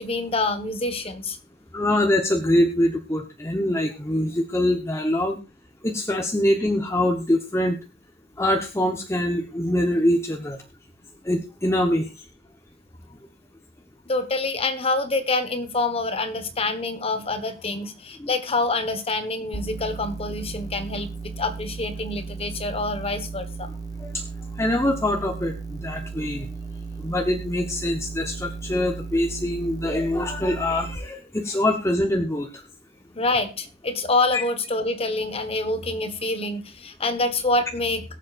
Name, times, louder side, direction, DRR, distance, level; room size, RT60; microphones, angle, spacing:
voice 1, 0.0-1.4 14.1-23.7 33.1-38.0, left 2 dB, 30° left, 9 dB, 1.2 m, -26 dB
voice 2, 1.7-5.4 5.8-7.8 8.4-10.6 11.2-12.1 18.2-18.3 24.0-24.2 24.6-26.5 27.0-32.6 34.3-34.4, left 1 dB, 15° left, 3 dB, 0.9 m, -24 dB
sound 1, 19.5-31.0, right 4 dB, 20° right, 1.1 m, -35 dB
22.0 x 7.4 x 2.4 m, 0.28 s
head